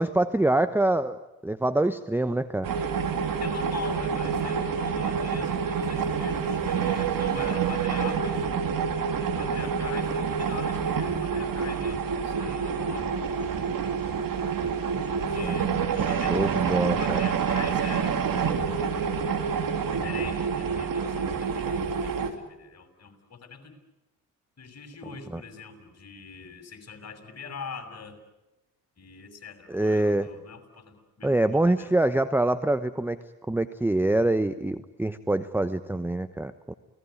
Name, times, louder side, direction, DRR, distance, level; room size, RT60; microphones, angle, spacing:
voice 1, 0.0-2.7 15.4-15.6 16.3-17.2 25.3-25.4 29.7-30.3 31.2-33.2 33.5-36.7, right 1 dB, 5° right, 12 dB, 1.0 m, -25 dB
sound 1, 2.6-22.3, right 6 dB, 45° right, 3.4 m, -27 dB
voice 2, 3.4-8.5 9.4-13.1 15.1-19.1 19.7-23.7 24.6-28.2 29.0-31.9, left 5 dB, 35° left, 6 dB, 6.7 m, -42 dB
29.0 x 19.0 x 9.7 m, 1.0 s
hypercardioid pair, 60°, 45 cm